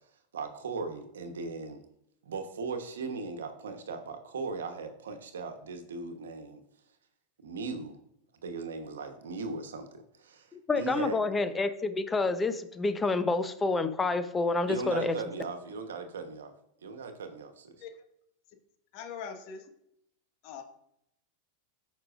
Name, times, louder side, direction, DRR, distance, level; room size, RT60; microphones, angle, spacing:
voice 1, 0.3-1.8 2.2-6.6 7.4-8.0 8.4-10.5 10.8-11.2 14.7-16.5 16.8-17.8, right 4 dB, 80° right, 1.1 m, -38 dB
voice 2, 10.5-15.2, left 3 dB, 15° left, 0.8 m, -28 dB
voice 3, 18.9-19.6 20.4-20.6, left 6 dB, 55° left, 1.4 m, -41 dB
13.5 x 5.4 x 2.5 m
hypercardioid pair, 95°, 0 cm